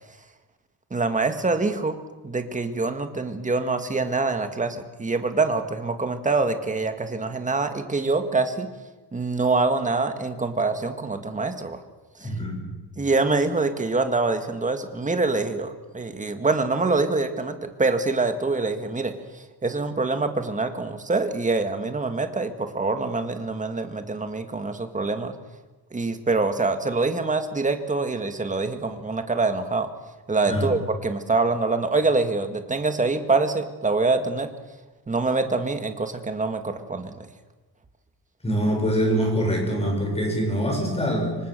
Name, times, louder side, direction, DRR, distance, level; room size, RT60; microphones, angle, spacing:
voice 1, 0.9-2.0 2.2-8.7 9.1-11.8 12.2-12.3 13.0-25.3 25.9-29.9 30.3-34.5 35.1-37.3, right 3 dB, 20° right, 8 dB, 1.8 m, -25 dB
voice 2, 12.2-12.6 30.5-30.7 38.4-41.4, equal, 15° left, 1 dB, 7.3 m, -24 dB
26.0 x 24.5 x 6.8 m, 1.2 s
wide cardioid pair, 175°, 41 cm